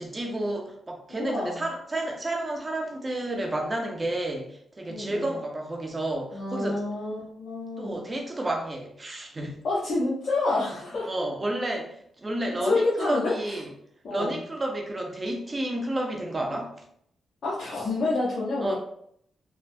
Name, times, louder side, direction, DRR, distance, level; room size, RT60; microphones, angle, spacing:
voice 1, 0.0-6.8 7.8-9.6 11.1-13.7 14.1-16.7 18.6-18.7, right 1 dB, 30° right, 1 dB, 0.7 m, -31 dB
voice 2, 1.1-1.6 4.9-5.3 6.3-8.0 9.6-11.1 12.6-13.6 14.0-14.4 17.4-18.7, left 2 dB, 65° left, -8 dB, 0.8 m, -28 dB
3.2 x 2.1 x 2.6 m, 0.68 s
cardioid pair, 70°, 0 cm